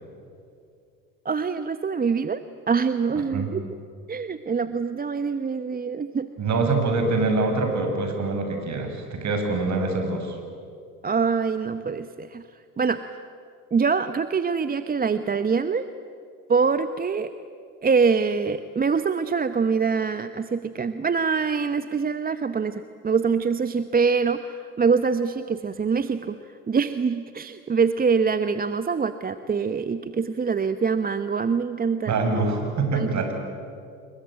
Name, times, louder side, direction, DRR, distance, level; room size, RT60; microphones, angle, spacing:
voice 1, 1.2-3.7 4.1-6.3 11.0-12.4 12.8-13.2 13.7-15.9 16.5-17.3 17.8-26.4 26.7-32.2 32.9-33.2, right 5 dB, 20° right, 11 dB, 1.0 m, -24 dB
voice 2, 3.2-3.5 6.4-10.4 32.1-33.3, right 3 dB, 45° right, 5 dB, 6.7 m, -25 dB
28.0 x 22.0 x 9.0 m, 2.4 s
hypercardioid pair, 75°, 39 cm